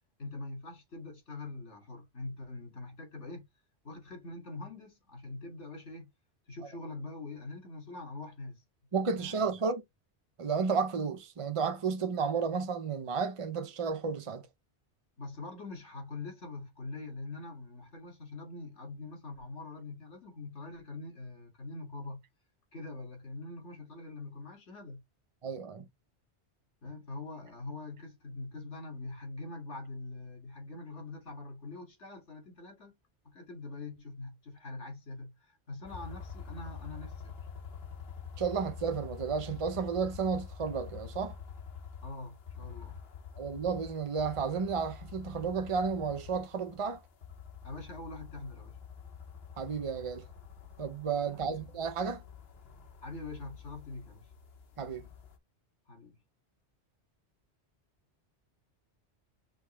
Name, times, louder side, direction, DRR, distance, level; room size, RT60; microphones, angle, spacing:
voice 1, 0.2-3.5 3.8-6.1 6.5-8.6 9.0-9.5 15.2-22.2 22.7-25.0 26.8-33.0 33.2-37.3 42.0-43.0 47.6-48.8 51.3-51.6 53.0-54.3 55.9-56.2, left 2 dB, 75° left, 2.4 m, -44 dB
voice 2, 8.9-9.8 10.4-14.4 25.4-25.9 38.4-41.4 43.4-47.0 49.6-50.3 50.8-52.2 54.8-55.0, right 5 dB, 30° right, 0.8 m, -32 dB
sound 1, 35.8-55.4, left 6 dB, 60° left, 1.2 m, -47 dB
5.3 x 3.2 x 3.1 m
omnidirectional pair, 1.2 m